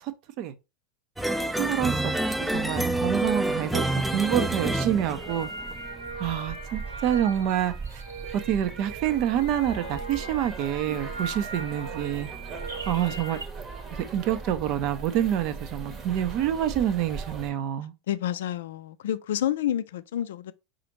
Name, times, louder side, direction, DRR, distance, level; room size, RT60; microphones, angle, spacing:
sound 1, 1.2-5.8, right 2 dB, 5° right, 0.4 m, -27 dB
sound 2, 1.3-17.5, right 4 dB, 30° right, 0.9 m, -41 dB
voice 1, 1.6-2.1 2.4-3.8 4.1-5.5 6.2-7.7 8.5-12.3 12.9-13.4 14.1-17.9, right 10 dB, 50° right, 0.5 m, -27 dB
sound 3, 4.6-13.5, right 3 dB, 85° right, 1.3 m, -39 dB
voice 2, 18.1-20.5, left 11 dB, 70° left, 0.3 m, -29 dB
4.9 x 2.5 x 2.9 m
figure-of-eight pair, 85°, 0 cm